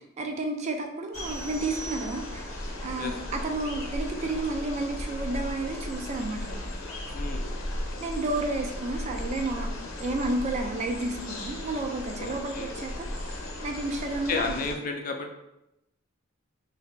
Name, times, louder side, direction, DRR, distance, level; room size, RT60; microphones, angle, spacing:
voice 1, 0.2-2.5 2.8-6.7 8.0-9.7 10.0-14.6, right 2 dB, 35° right, 3 dB, 0.3 m, -31 dB
sound 1, 1.1-14.7, left 1 dB, 80° left, 0.7 m, -36 dB
sound 2, 1.1-2.7, right 5 dB, 55° right, 1.4 m, -43 dB
voice 2, 7.1-7.5 12.2-12.7 14.3-15.3, left 4 dB, 40° left, 3 dB, 0.4 m, -32 dB
2.9 x 2.7 x 3.2 m, 0.87 s
head